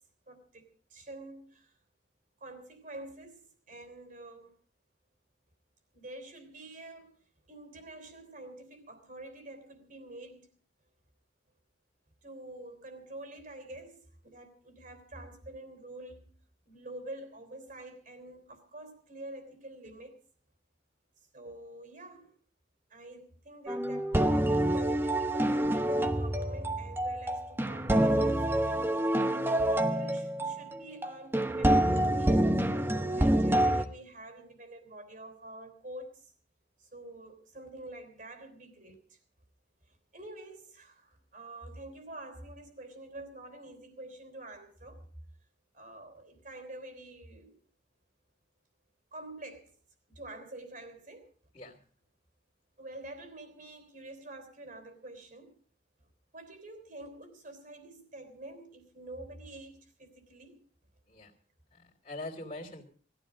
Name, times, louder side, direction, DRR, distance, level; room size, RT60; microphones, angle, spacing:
voice 1, 0.3-1.7 2.4-4.6 5.9-7.1 7.5-10.5 12.2-16.4 16.6-20.2 21.3-22.3 22.9-24.3 24.5-29.1 29.4-32.4 33.1-36.3 36.8-39.2 39.9-45.1 45.7-47.6 49.1-49.7 50.1-51.3 52.8-55.5 56.3-60.6, right 2 dB, 50° right, 3.4 m, -47 dB
sound 1, 23.7-33.8, right 1 dB, 10° right, 0.9 m, -27 dB
voice 2, 61.7-62.8, left 2 dB, 30° left, 2.8 m, -43 dB
19.5 x 15.0 x 5.1 m
head